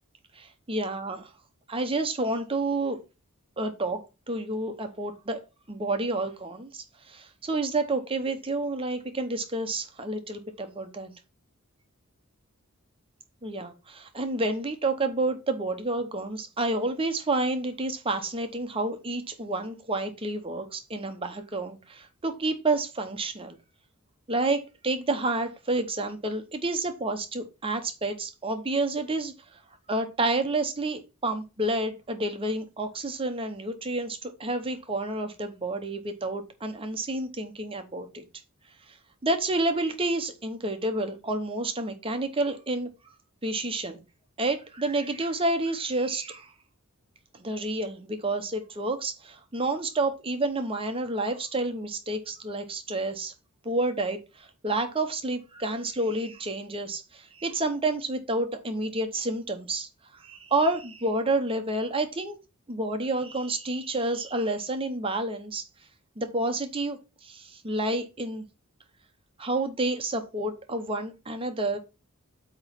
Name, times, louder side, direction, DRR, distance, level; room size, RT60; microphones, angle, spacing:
voice 1, 0.4-1.3 1.7-3.0 3.6-4.0 4.3-5.4 5.7-11.1 13.4-23.6 24.3-29.3 29.9-38.2 39.2-42.9 43.4-44.0 44.4-46.5 47.4-53.3 53.6-59.9 60.1-62.4 62.7-65.6 66.2-68.4 69.4-71.8, right 2 dB, 25° right, 0.8 m, -29 dB
8.5 x 3.0 x 5.7 m
head